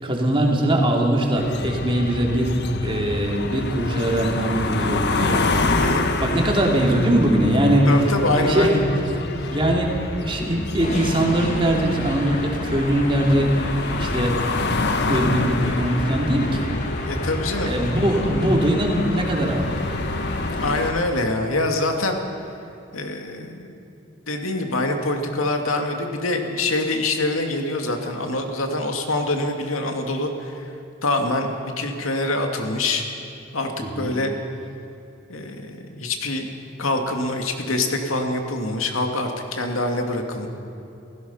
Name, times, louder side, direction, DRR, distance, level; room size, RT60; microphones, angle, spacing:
voice 1, 0.0-5.4 6.2-8.8 9.5-9.9 10.2-13.5 14.0-14.4 15.1-16.7 17.6-19.9 33.8-34.1, right 1 dB, 25° right, -1 dB, 3.0 m, -21 dB
sound 1, 1.3-20.9, left 2 dB, 55° left, 1.3 m, -27 dB
voice 2, 5.7-6.6 7.9-8.8 9.4-9.6 17.0-17.7 20.6-22.2 22.9-23.7 24.3-30.7 31.0-33.0 33.5-34.3 35.3-36.5 36.8-40.5, left 2 dB, 90° left, 4 dB, 2.3 m, -25 dB
sound 2, 10.8-21.0, left 1 dB, 35° left, 2.1 m, -32 dB
29.5 x 16.5 x 5.7 m, 2.8 s
head